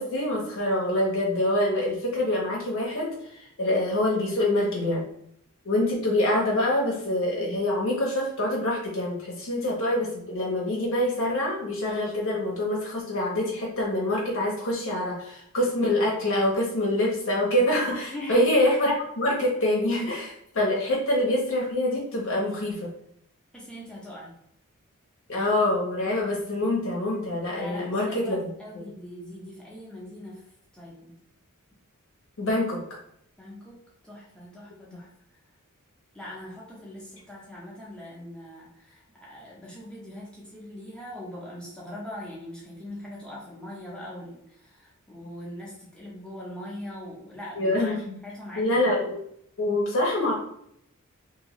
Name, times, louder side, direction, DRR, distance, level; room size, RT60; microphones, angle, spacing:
voice 1, 0.0-5.0 5.6-22.9 25.3-28.5 28.7-28.8 32.4-32.8 47.6-48.0 48.6-49.2 49.6-50.3, left 1 dB, 60° left, -2 dB, 0.7 m, -25 dB
voice 2, 18.1-18.4 23.5-24.3 27.6-30.5 30.7-31.1 33.4-35.1 36.1-47.9 48.2-48.9, left 1 dB, 5° left, -6 dB, 0.7 m, -41 dB
2.9 x 2.6 x 3.0 m, 0.72 s
head